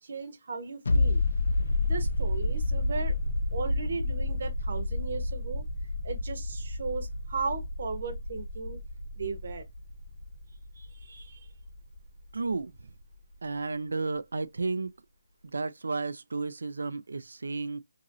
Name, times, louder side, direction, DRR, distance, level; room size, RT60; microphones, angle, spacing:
voice 1, 0.0-1.2 1.8-3.2 3.5-5.7 6.0-8.8 9.2-9.7 10.7-11.5, right 4 dB, 40° right, 0.8 m, -36 dB
sound 1, 0.9-12.2 12.5-12.6, left 2 dB, 65° left, 0.6 m, -30 dB
voice 2, 12.3-12.7 13.4-14.9 15.4-17.8, right 3 dB, 85° right, 0.4 m, -32 dB
2.9 x 2.6 x 2.6 m
hypercardioid pair, 180°, 0 cm